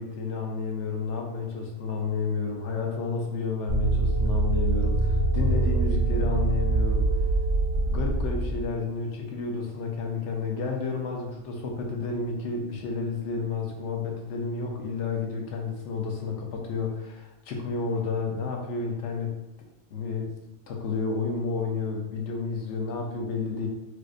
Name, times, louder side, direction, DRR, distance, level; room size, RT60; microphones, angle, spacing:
voice 1, 0.0-7.2 7.7-19.3 19.9-20.3 20.7-23.7, left 4 dB, 65° left, 1 dB, 0.8 m, -31 dB
sound 1, 3.7-8.7, right 2 dB, 40° right, 0.8 m, -24 dB
4.8 x 2.1 x 2.5 m, 0.92 s
omnidirectional pair, 1.5 m